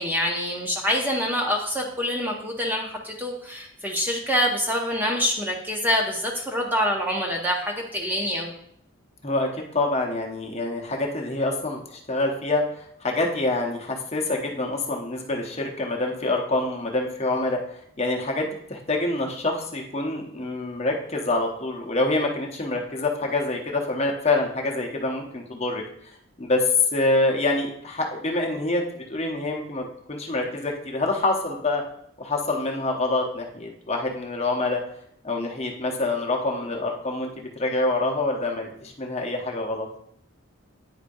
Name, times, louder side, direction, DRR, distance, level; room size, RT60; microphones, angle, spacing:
voice 1, 0.0-8.5, equal, 10° right, 0 dB, 0.6 m, -26 dB
voice 2, 9.2-17.6 18.0-25.8 26.4-31.8 32.2-34.8 35.2-39.9, left 2 dB, 30° left, 1 dB, 0.8 m, -26 dB
9.3 x 5.0 x 2.6 m, 0.68 s
head